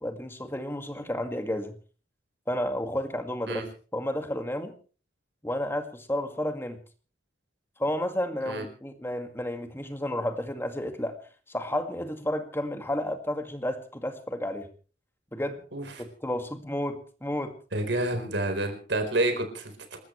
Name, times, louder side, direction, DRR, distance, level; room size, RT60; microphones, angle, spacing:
voice 1, 0.0-1.7 2.5-3.6 3.9-4.7 5.4-6.8 7.8-11.2 11.5-14.7 15.3-15.6 16.0-17.5, left 1 dB, 15° left, 6 dB, 2.1 m, -31 dB
voice 2, 17.7-20.0, right 2 dB, 75° right, 6 dB, 4.3 m, -28 dB
28.0 x 13.5 x 3.3 m, 0.38 s
head